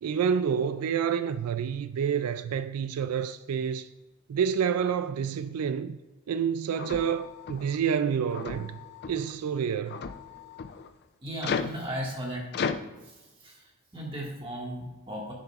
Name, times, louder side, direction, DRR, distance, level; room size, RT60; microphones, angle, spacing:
voice 1, 0.0-3.9 4.3-6.0 6.3-8.8 9.1-10.0, right 7 dB, 90° right, 0.3 m, -28 dB
sound 1, 6.7-7.8 8.3-9.3 9.9-10.9 11.4-11.8 12.5-12.8, left 5 dB, 50° left, 0.4 m, -34 dB
voice 2, 11.2-12.8 13.0-15.3, equal, 25° right, 1.8 m, -37 dB
10.0 x 6.8 x 2.4 m
head